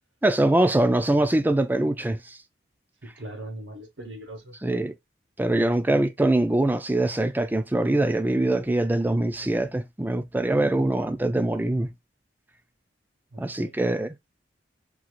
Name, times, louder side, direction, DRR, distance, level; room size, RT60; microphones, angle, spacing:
voice 1, 0.2-2.4 4.6-4.9 5.4-11.9 13.4-14.2, right 1 dB, 10° right, 0.3 m, -23 dB
voice 2, 3.0-4.6 13.3-13.8, right 1 dB, 90° right, 0.8 m, -40 dB
3.8 x 2.4 x 2.9 m
head